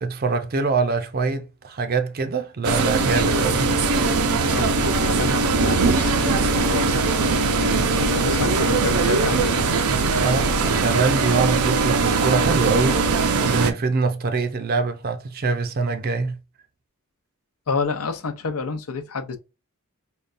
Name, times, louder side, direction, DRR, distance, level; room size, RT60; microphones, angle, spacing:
voice 1, 0.0-3.7 10.2-16.4, right 4 dB, 45° right, 0.5 m, -24 dB
sound 1, 2.6-13.7, right 4 dB, 90° right, 0.6 m, -21 dB
voice 2, 4.5-7.2 7.5-9.6 17.7-19.4, left 4 dB, 85° left, 0.7 m, -29 dB
5.3 x 2.2 x 2.5 m
head